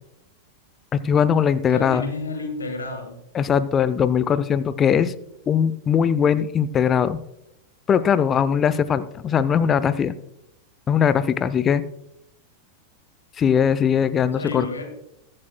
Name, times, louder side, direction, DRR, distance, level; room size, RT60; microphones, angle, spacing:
voice 1, 0.9-2.0 3.3-5.1 5.5-7.2 7.9-10.1 10.9-11.8 13.4-14.7, left 7 dB, 25° left, 15 dB, 0.6 m, -20 dB
voice 2, 1.7-3.2 14.4-14.8, left 3 dB, 75° left, 4 dB, 1.8 m, -30 dB
21.5 x 7.6 x 2.2 m, 0.83 s
figure-of-eight pair, 90°, 0 cm